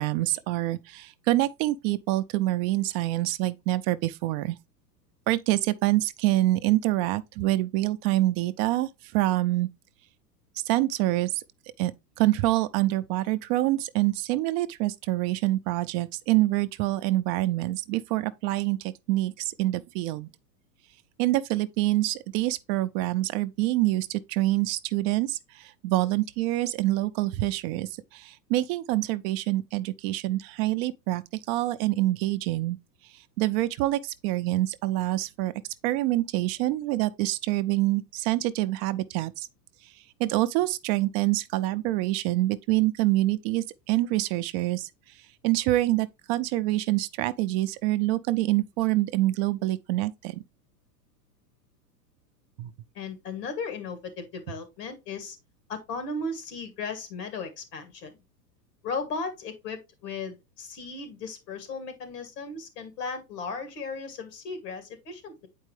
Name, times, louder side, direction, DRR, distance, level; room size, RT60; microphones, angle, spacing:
voice 1, 0.0-4.6 5.3-9.7 10.6-11.4 11.8-11.9 12.2-20.3 21.2-32.8 33.1-35.5 35.8-39.5 39.8-50.4 52.6-52.7, right 17 dB, 45° right, 0.5 m, -26 dB
voice 2, 52.9-55.4 55.7-58.2 58.8-65.5, left 4 dB, 80° left, 2.4 m, -36 dB
8.0 x 4.6 x 3.2 m
hypercardioid pair, 115°, 48 cm